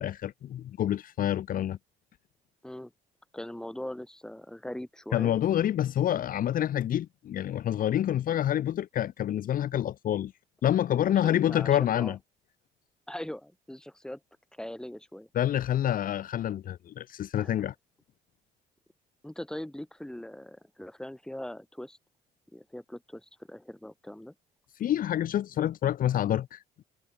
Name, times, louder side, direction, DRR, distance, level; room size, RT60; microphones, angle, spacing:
voice 1, 0.0-1.8 5.1-10.3 10.6-12.2 15.3-17.7 24.8-26.6, left 11 dB, 55° left, 1.4 m, -27 dB
voice 2, 3.3-5.4 11.1-12.2 13.1-14.2 14.5-15.3 17.4-17.5 19.2-22.0 22.5-24.3, left 1 dB, 5° left, 6.6 m, -41 dB
cardioid pair, 110°, 17 cm